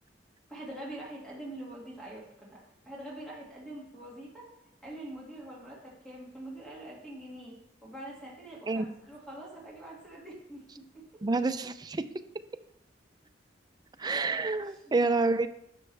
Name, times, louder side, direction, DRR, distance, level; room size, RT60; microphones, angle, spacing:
voice 1, 0.5-4.5 4.8-7.6 7.8-11.2 14.4-15.0, right 1 dB, 5° left, -5 dB, 2.1 m, -45 dB
voice 2, 11.2-12.0 14.0-15.5, right 3 dB, 25° right, 9 dB, 0.4 m, -28 dB
11.0 x 6.3 x 3.3 m, 0.80 s
head